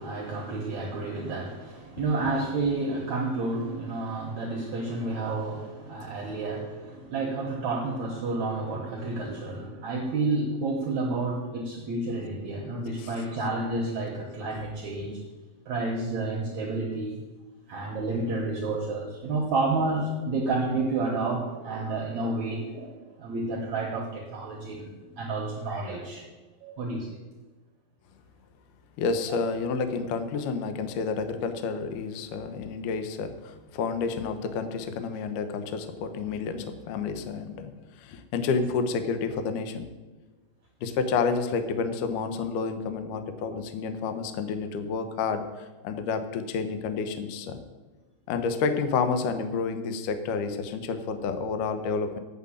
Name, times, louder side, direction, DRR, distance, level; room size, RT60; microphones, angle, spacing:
voice 1, 0.0-15.2 15.7-17.2 17.7-26.2 26.6-27.1 29.3-29.4, right 3 dB, 70° right, 0 dB, 1.8 m, -30 dB
voice 2, 29.0-37.7 38.0-39.9 40.8-47.6 48.3-52.2, left 5 dB, 80° left, 9 dB, 1.8 m, -30 dB
8.1 x 7.4 x 8.7 m, 1.2 s
omnidirectional pair, 4.9 m